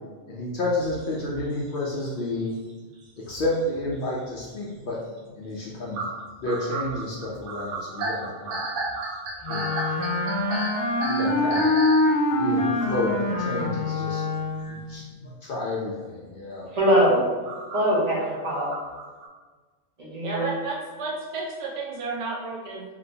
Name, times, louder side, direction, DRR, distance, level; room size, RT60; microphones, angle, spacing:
voice 1, 0.1-2.5 3.2-5.0 5.4-8.6 9.5-9.8 11.0-11.7 12.3-14.2 14.7-16.7, left 2 dB, 65° left, -5 dB, 0.5 m, -30 dB
sound 1, 0.8-2.5 2.8-4.4 4.8-4.9 5.3-5.4 5.9-12.1 12.8-12.9 14.8-14.9 16.9-19.3, right 3 dB, 75° right, 0.9 m, -33 dB
Wind instrument woodwind instrument, 9.4-14.8, left 2 dB, 40° left, 0.8 m, -24 dB
voice 2, 16.7-17.2 17.7-18.7 20.0-20.5, equal, 35° right, -6 dB, 0.9 m, -22 dB
voice 3, 20.2-22.8, right 4 dB, 50° right, -2 dB, 0.4 m, -32 dB
3.0 x 2.8 x 2.6 m, 1.4 s
omnidirectional pair, 1.3 m